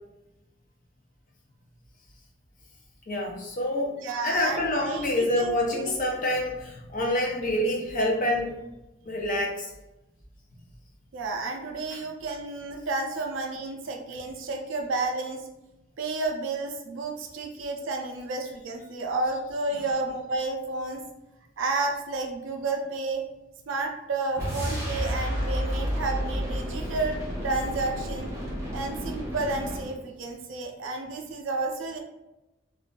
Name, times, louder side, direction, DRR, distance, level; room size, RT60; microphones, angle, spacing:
voice 1, 3.1-3.9 4.2-8.5 9.0-9.7 11.9-12.0 19.7-19.9, left 1 dB, 45° left, -1 dB, 0.5 m, -27 dB
voice 2, 4.0-5.9 11.1-15.5 16.0-21.0 21.6-23.2 23.7-28.3 28.7-32.0, right 3 dB, 80° right, 2 dB, 0.4 m, -31 dB
sound 1, 24.3-30.0, equal, 15° right, 0.7 m, -31 dB
2.4 x 2.3 x 2.2 m, 0.95 s
head